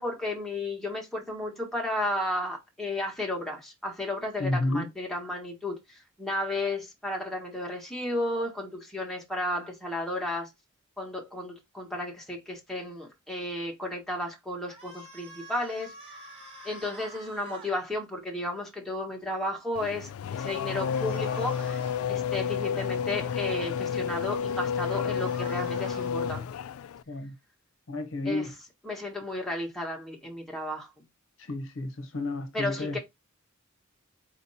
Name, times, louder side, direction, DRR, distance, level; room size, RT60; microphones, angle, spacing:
voice 1, 0.0-10.5 11.0-16.2 16.6-21.8 22.1-26.5 28.2-28.6 28.8-30.9 32.5-33.0, left 1 dB, ahead, 1.4 m, -33 dB
voice 2, 4.4-4.9 27.1-27.3 27.9-28.5 31.5-33.0, left 2 dB, 65° left, 0.8 m, -31 dB
sound 1, 14.6-17.7 20.8-22.0 23.1-23.7 24.9-26.1, equal, 30° right, 2.2 m, -47 dB
Race car auto racing / Accelerating revving vroom, 19.7-27.0, left 7 dB, 85° left, 0.3 m, -31 dB
4.4 x 2.9 x 4.1 m
head